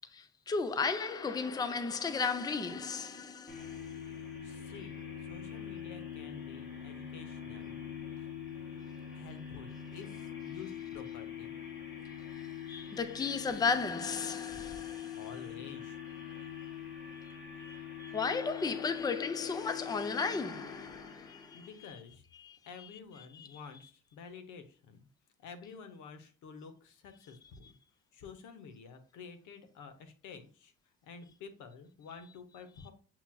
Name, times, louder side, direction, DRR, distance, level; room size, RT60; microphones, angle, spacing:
voice 1, 0.1-3.9 12.7-15.2 17.6-21.7 22.4-22.9 23.3-23.6, left 4 dB, 15° left, 0.4 m, -35 dB
sound 1, 3.5-21.8, left 9 dB, 40° left, 2.0 m, -43 dB
voice 2, 4.4-7.8 8.2-8.3 9.1-11.5 15.1-16.0 21.3-22.2 22.7-25.0 25.4-27.7 28.1-30.7 31.0-32.9, left 5 dB, 85° left, 0.8 m, -50 dB
7.2 x 2.9 x 2.2 m
cardioid pair, 90°, 30 cm